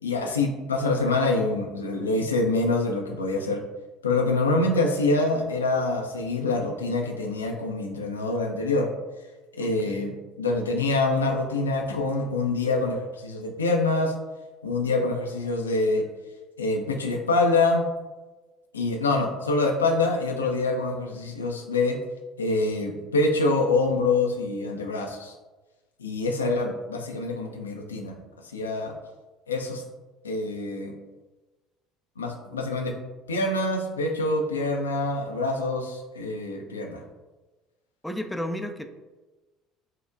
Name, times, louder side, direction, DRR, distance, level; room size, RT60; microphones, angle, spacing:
voice 1, 0.0-3.6 4.0-8.9 9.5-10.1 10.4-13.0 13.2-14.1 14.6-16.0 16.6-17.8 18.7-22.0 22.4-25.3 26.0-28.2 28.5-28.9 29.5-29.8 30.2-30.9 32.2-32.9 33.3-37.0, left 2 dB, 85° left, 1 dB, 0.4 m, -25 dB
voice 2, 9.6-10.1 20.4-20.5 38.0-38.9, left 1 dB, 5° left, 7 dB, 0.3 m, -33 dB
4.5 x 2.1 x 2.4 m, 1.2 s
figure-of-eight pair, 60°, 0 cm